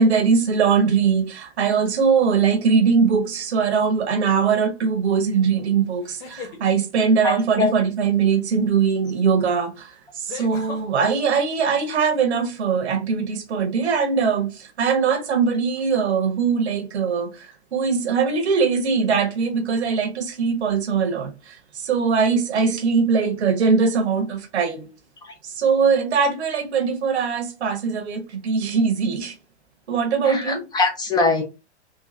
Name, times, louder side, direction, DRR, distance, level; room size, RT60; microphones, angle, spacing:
voice 1, 0.0-21.6 21.8-24.9 25.4-29.3 29.9-30.6, right 5 dB, 70° right, 1.1 m, -21 dB
sound 1, 3.4-3.8 6.0-6.6 8.9-9.0 10.3-10.8, left 4 dB, 30° left, 1.3 m, -37 dB
voice 2, 7.2-7.7 25.2-25.3 30.3-31.4, left 3 dB, 15° left, 0.4 m, -22 dB
3.9 x 2.6 x 2.5 m
figure-of-eight pair, 105°, 34 cm